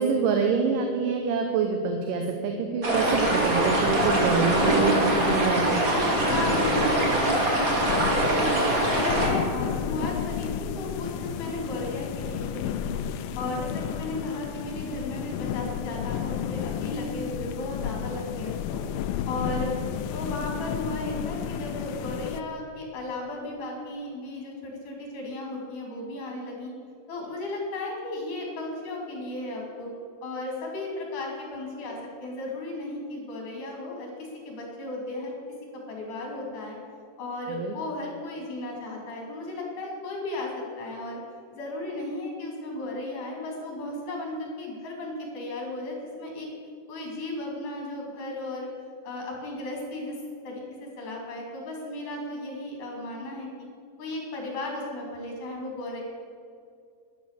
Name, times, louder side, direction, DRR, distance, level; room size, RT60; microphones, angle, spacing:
voice 1, 0.0-5.9 37.5-37.7, right 5 dB, 75° right, 4 dB, 2.5 m, -26 dB
sound 1, 2.8-9.3, right 2 dB, 30° right, 2.1 m, -23 dB
sound 2, 2.9-22.4, left 9 dB, 85° left, 2.4 m, -32 dB
voice 2, 6.2-8.5 8.8-10.5 10.8-12.9 13.4-18.8 19.3-19.8 20.1-26.7 27.1-29.9 30.2-35.3 35.9-36.8 37.2-41.2 41.5-46.5 46.9-48.7 49.0-50.2 50.4-53.7 54.0-56.0, left 2 dB, 65° left, -1 dB, 4.6 m, -35 dB
11.5 x 11.0 x 6.9 m, 2.4 s
omnidirectional pair, 3.9 m